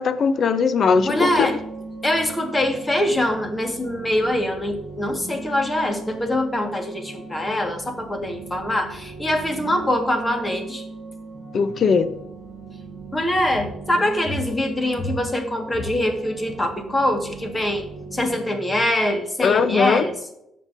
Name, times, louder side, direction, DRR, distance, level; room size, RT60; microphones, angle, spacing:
voice 1, 0.0-1.5 11.5-12.1 19.4-20.1, left 5 dB, 55° left, 13 dB, 0.7 m, -19 dB
sound 1, 0.9-18.4, right 3 dB, 35° right, 3.2 m, -38 dB
voice 2, 1.0-1.6 2.0-10.8 13.1-17.9 18.1-20.1, left 1 dB, 20° left, 4 dB, 1.6 m, -23 dB
14.5 x 5.7 x 2.6 m, 0.83 s
cardioid pair, 90°, 0 cm